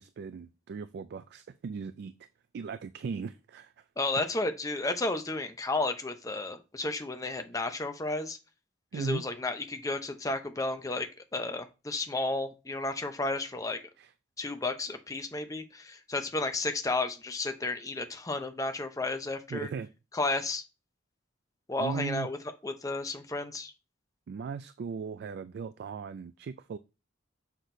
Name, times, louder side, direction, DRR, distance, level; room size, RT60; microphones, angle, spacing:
voice 1, 0.0-2.1 2.5-3.9 8.9-9.2 14.0-14.1 19.5-19.9 21.8-22.3 24.3-26.8, right 5 dB, 55° right, 0.3 m, -37 dB
voice 2, 4.0-8.4 8.9-13.8 14.4-19.7 20.1-20.6 21.7-22.4 22.6-23.7, left 2 dB, 20° left, 0.7 m, -32 dB
6.4 x 5.9 x 2.6 m
head